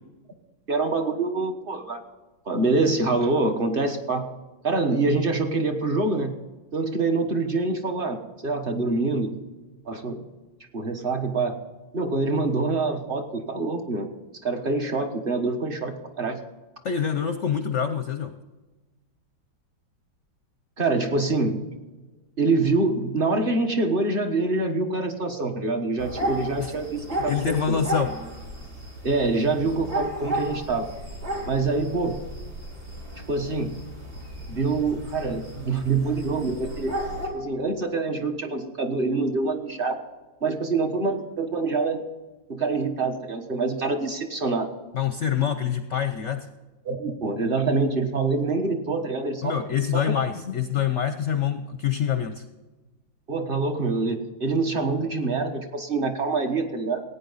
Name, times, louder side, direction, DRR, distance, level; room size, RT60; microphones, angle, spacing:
voice 1, 0.7-2.0 2.4-4.3 4.6-6.3 6.7-9.3 9.9-10.2 10.7-11.6 11.9-14.1 14.4-16.4 20.8-21.7 22.4-27.8 29.0-30.9 31.5-32.2 33.3-33.7 34.5-36.9 37.3-40.0 40.4-42.0 42.5-44.7 46.8-49.5 49.9-50.1 53.3-57.0, right 3 dB, 30° right, 5 dB, 1.3 m, -25 dB
voice 2, 16.8-18.4 26.6-26.7 27.3-28.1 44.9-46.5 49.4-52.4, left 8 dB, 60° left, 8 dB, 0.8 m, -26 dB
sound 1, 26.0-37.3, right 1 dB, 50° right, 4.0 m, -34 dB
16.5 x 9.5 x 4.1 m, 1.2 s
omnidirectional pair, 2.0 m